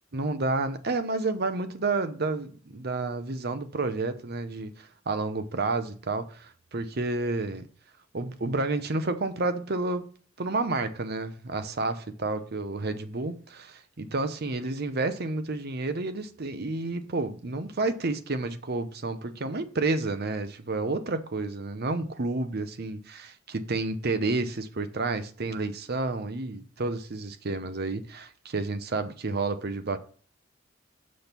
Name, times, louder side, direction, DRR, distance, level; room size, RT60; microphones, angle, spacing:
voice 1, 0.1-7.7 8.1-30.0, right 3 dB, 50° right, 0.8 m, -30 dB
6.3 x 5.3 x 5.9 m
head